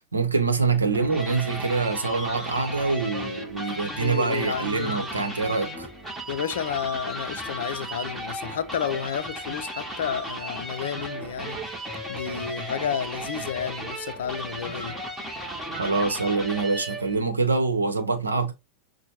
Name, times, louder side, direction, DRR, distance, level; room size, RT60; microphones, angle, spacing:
voice 1, 0.1-5.9 15.8-18.5, right 4 dB, 75° right, 0.9 m, -25 dB
sound 1, 0.7-17.2, right 1 dB, 5° right, 0.9 m, -35 dB
voice 2, 4.0-5.3 6.3-11.6 12.1-15.0, left 8 dB, 60° left, 0.5 m, -31 dB
6.2 x 2.2 x 2.9 m
figure-of-eight pair, 90°, 0 cm